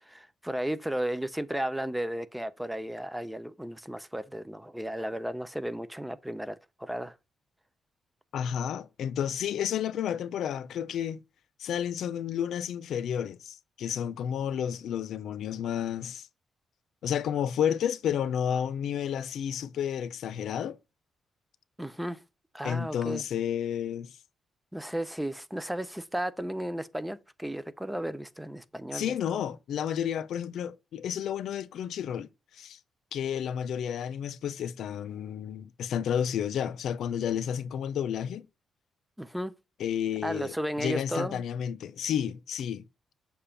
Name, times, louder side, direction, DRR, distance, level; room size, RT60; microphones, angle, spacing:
voice 1, 0.0-7.1 21.8-22.2 22.5-23.2 24.7-29.2 39.2-39.5 40.2-41.4, right 1 dB, 5° right, 0.4 m, -34 dB
voice 2, 8.3-11.2 11.6-16.3 17.0-20.8 22.6-24.1 28.9-32.3 32.5-32.8 33.1-38.5 39.8-42.8, left 9 dB, 75° left, 0.4 m, -31 dB
6.8 x 2.5 x 5.6 m
cardioid pair, 140°, 0 cm